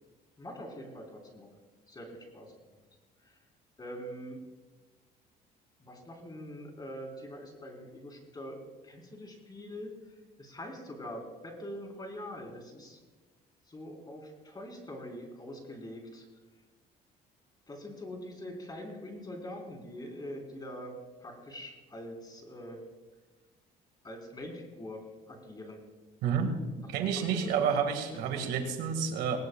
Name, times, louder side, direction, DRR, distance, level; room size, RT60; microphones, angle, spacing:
voice 1, 0.4-1.5 1.9-2.8 3.2-3.4 3.8-4.4 5.8-9.9 10.4-13.0 13.7-16.3 17.7-22.8 24.0-25.8 27.2-27.7 28.1-28.5, equal, 25° left, 1 dB, 4.2 m, -44 dB
voice 2, 26.2-26.5 26.9-29.4, right 7 dB, 90° right, 5 dB, 2.1 m, -29 dB
19.5 x 19.5 x 2.4 m, 1.2 s
cardioid pair, 110°, 17 cm